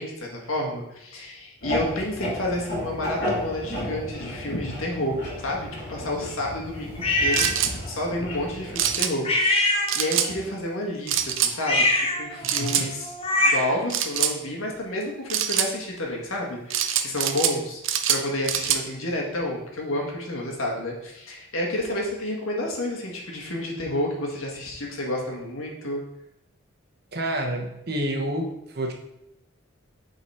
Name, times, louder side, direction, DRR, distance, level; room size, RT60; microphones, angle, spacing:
voice 1, 0.0-13.1 13.5-17.8 18.1-26.0, left 1 dB, 85° left, -1 dB, 1.6 m, -30 dB
sound 1, 1.6-9.0, left 1 dB, 50° left, 2.7 m, -33 dB
sound 2, 7.0-7.5 9.2-10.3 11.6-13.8, left 1 dB, 25° left, 0.8 m, -23 dB
sound 3, 7.3-7.7 8.8-9.1 9.9-10.3 11.1-11.5 12.4-12.9 13.9-14.3 15.3-15.7 16.7-17.6 17.8-18.8, right 9 dB, 65° right, 0.6 m, -24 dB
voice 2, 12.4-12.9 27.1-28.9, right 1 dB, 50° right, 2 dB, 1.0 m, -29 dB
7.5 x 4.0 x 4.3 m, 0.83 s
head